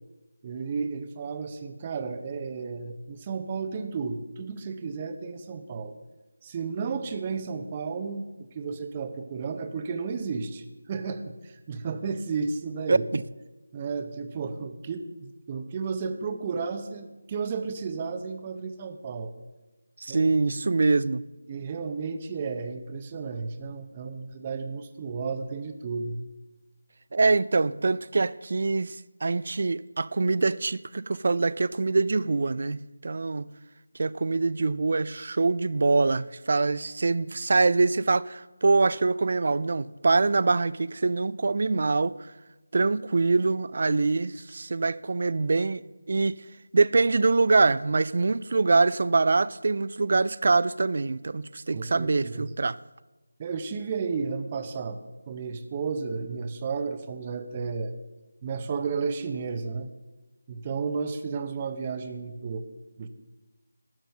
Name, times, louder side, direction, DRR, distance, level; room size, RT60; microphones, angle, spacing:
voice 1, 0.4-5.9 6.4-13.0 13.7-19.3 20.1-20.3 21.5-26.2 51.7-52.5 53.4-55.0 55.3-57.9 58.4-59.9 60.5-62.6 63.0-63.1, right 5 dB, 25° right, 0.8 m, -33 dB
voice 2, 12.9-13.2 20.0-21.2 27.1-33.5 34.0-42.2 42.7-45.8 46.1-46.4 46.7-52.8, right 3 dB, 45° right, 0.4 m, -24 dB
12.0 x 7.5 x 6.4 m
figure-of-eight pair, 165°, 0 cm